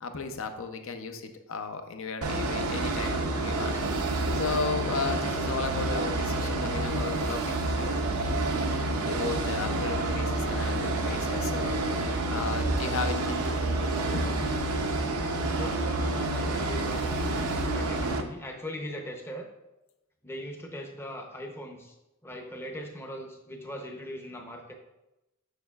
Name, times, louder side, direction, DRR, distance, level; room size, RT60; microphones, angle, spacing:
voice 1, 0.0-3.7 4.4-8.6 9.0-11.8 12.3-14.5, left 4 dB, 60° left, 7 dB, 0.6 m, -35 dB
sound 1, 2.2-18.2, right 2 dB, 75° right, 0.6 m, -28 dB
voice 2, 15.5-19.5 20.2-22.0 22.2-24.7, equal, 10° left, 2 dB, 0.6 m, -40 dB
6.5 x 6.5 x 2.3 m, 0.95 s
head